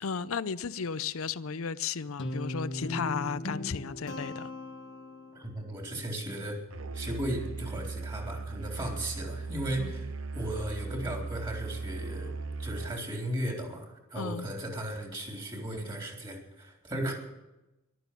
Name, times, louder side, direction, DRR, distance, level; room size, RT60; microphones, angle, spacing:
voice 1, 0.0-4.5 9.8-9.9 14.2-14.5, left 6 dB, 85° left, 0.6 m, -34 dB
Guitar, 2.2-5.5, left 1 dB, 65° left, 1.4 m, -37 dB
voice 2, 5.3-6.6 6.9-12.3 12.6-17.1, right 1 dB, 25° right, 3.8 m, -36 dB
Musical instrument, 6.7-13.1, right 3 dB, 75° right, 0.8 m, -38 dB
14.0 x 12.5 x 8.4 m
head